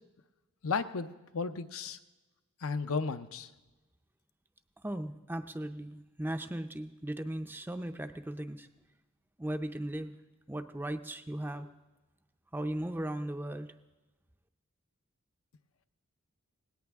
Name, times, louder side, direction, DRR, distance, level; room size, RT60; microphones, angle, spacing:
voice 1, 0.6-1.1 1.3-2.0 2.6-3.5, left 4 dB, 70° left, 9 dB, 0.7 m, -33 dB
voice 2, 4.8-8.7 9.4-10.2 10.5-11.7 12.5-13.7, right 1 dB, 10° right, 8 dB, 0.5 m, -37 dB
19.0 x 17.5 x 3.5 m, 1.2 s
head